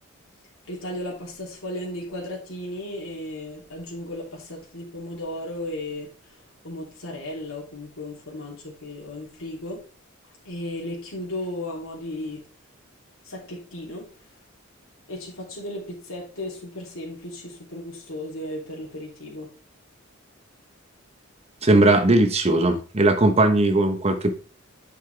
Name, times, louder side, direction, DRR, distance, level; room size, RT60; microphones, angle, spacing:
voice 1, 0.7-6.1 6.6-9.8 10.4-12.4 13.2-14.1 15.1-19.5, left 1 dB, 75° left, 3.1 m, -35 dB
voice 2, 21.6-24.3, right 2 dB, 30° right, 1.1 m, -18 dB
8.4 x 5.9 x 3.4 m
head